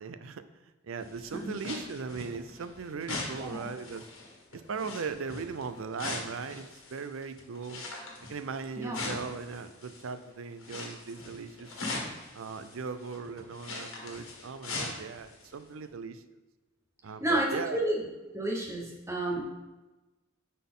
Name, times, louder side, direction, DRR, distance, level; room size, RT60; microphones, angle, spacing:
voice 1, 0.0-4.0 4.5-7.8 8.3-11.8 12.3-16.2 17.0-17.8, right 5 dB, 80° right, 11 dB, 0.5 m, -39 dB
sound 1, 1.0-10.2 10.6-15.5 15.8-15.9, left 2 dB, 90° left, 1.6 m, -41 dB
voice 2, 3.3-3.7 8.8-9.0 17.2-18.1 18.3-19.5, right 1 dB, 15° right, -1 dB, 1.0 m, -31 dB
9.2 x 4.2 x 3.7 m, 1.1 s
head